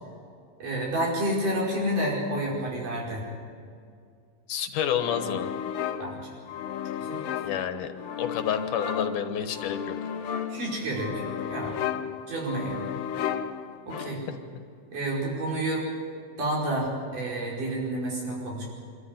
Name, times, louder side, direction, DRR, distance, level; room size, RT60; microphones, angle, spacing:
voice 1, 0.6-3.2 6.0-6.3 7.0-7.3 10.5-11.8 12.3-12.8 13.9-14.2 14.9-15.8 16.4-18.6, right 1 dB, 85° right, -4 dB, 6.7 m, -29 dB
voice 2, 4.5-5.5 7.4-7.9 8.2-10.0, left 9 dB, 90° left, 8 dB, 2.9 m, -29 dB
sound 1, 5.0-14.5, left 8 dB, 65° left, 1.4 m, -34 dB
26.5 x 13.0 x 9.8 m, 2.2 s
omnidirectional pair, 3.6 m